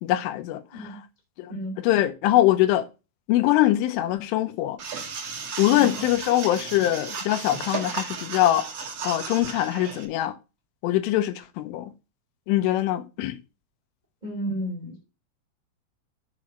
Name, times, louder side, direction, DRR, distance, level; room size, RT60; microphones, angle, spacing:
voice 1, 0.0-0.6 1.4-1.5 1.8-2.9 3.3-4.8 5.6-8.7 9.0-10.3 10.8-11.9 12.5-13.4, left 14 dB, 80° left, 3.3 m, -23 dB
sound 1, 4.8-10.1, right 5 dB, 60° right, 1.6 m, -34 dB
voice 2, 5.6-6.0 14.2-15.0, right 1 dB, 90° right, 0.3 m, -32 dB
7.0 x 6.3 x 5.9 m
omnidirectional pair, 5.8 m